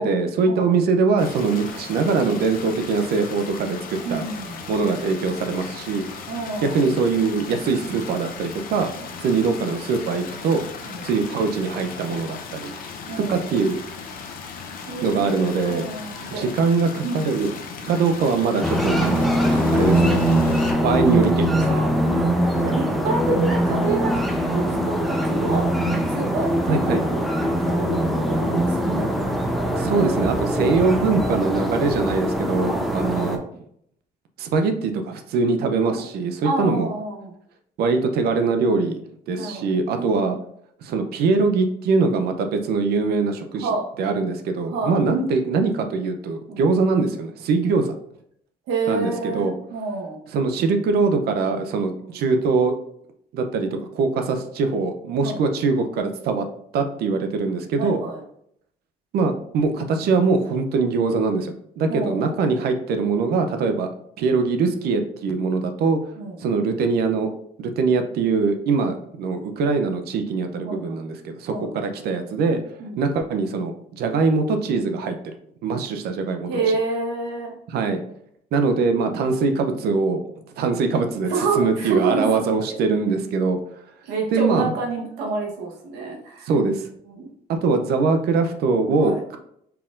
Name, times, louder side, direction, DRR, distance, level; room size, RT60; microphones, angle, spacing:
voice 1, 0.0-4.2 4.7-6.0 6.6-8.9 9.2-10.6 11.0-12.8 13.2-13.8 15.0-15.9 16.3-17.5 17.8-19.0 19.7-20.2 20.8-21.8 26.7-27.0 29.8-33.4 34.4-36.9 37.8-39.0 39.3-40.4 40.8-43.7 44.0-47.9 48.9-49.5 50.3-52.7 53.3-56.4 56.7-58.0 59.1-63.9 64.2-66.0 66.4-67.3 67.6-72.6 73.0-75.3 75.6-76.5 77.7-78.0 78.5-80.2 80.6-81.3 81.6-83.6 84.3-84.7 86.4-86.9 87.6-89.4, right 4 dB, 70° right, 7 dB, 0.6 m, -22 dB
sound 1, 1.2-20.7, left 5 dB, 55° left, 0.7 m, -37 dB
voice 2, 4.0-4.6 6.3-6.8 10.8-11.1 13.1-13.5 14.9-16.5 17.0-17.2 21.6-24.2 24.5-25.7 26.1-27.3 27.6-29.1 32.6-32.9 35.9-36.1 36.4-37.3 39.3-40.4 43.6-43.9 44.7-45.0 46.5-46.8 48.7-50.2 55.2-55.4 57.8-58.2 61.9-62.3 66.2-66.4 70.6-71.0 71.5-71.7 72.8-73.0 76.5-77.5 81.3-82.4 84.0-86.5 87.1-87.3 89.0-89.2, right 3 dB, 90° right, 0 dB, 1.2 m, -28 dB
sound 2, 18.6-33.4, right 1 dB, ahead, 0.6 m, -22 dB
4.5 x 3.6 x 2.5 m, 0.69 s
cardioid pair, 110°, 17 cm